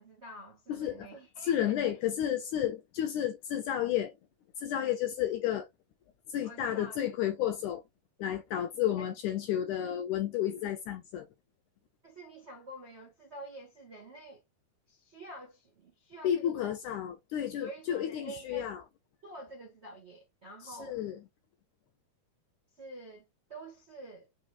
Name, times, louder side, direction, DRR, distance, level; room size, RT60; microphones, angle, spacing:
voice 1, 0.0-1.8 6.4-7.0 9.0-9.1 12.0-14.4 14.9-16.7 17.6-18.7 19.2-21.0 22.8-24.3, right 1 dB, 65° right, 0.6 m, -47 dB
voice 2, 0.7-1.1 1.4-4.1 4.6-5.7 6.3-7.8 8.2-11.3 16.2-18.8 20.6-21.2, left 11 dB, 75° left, 1.8 m, -32 dB
6.1 x 3.1 x 2.3 m
omnidirectional pair, 4.1 m